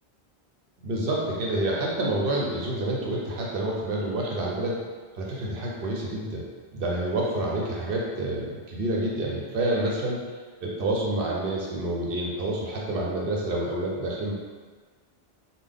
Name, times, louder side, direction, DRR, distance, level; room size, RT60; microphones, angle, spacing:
voice 1, 0.8-4.8 5.1-6.5 6.7-14.3, right 1 dB, 65° right, -3 dB, 0.7 m, -28 dB
3.6 x 2.1 x 3.4 m, 1.5 s
omnidirectional pair, 1.0 m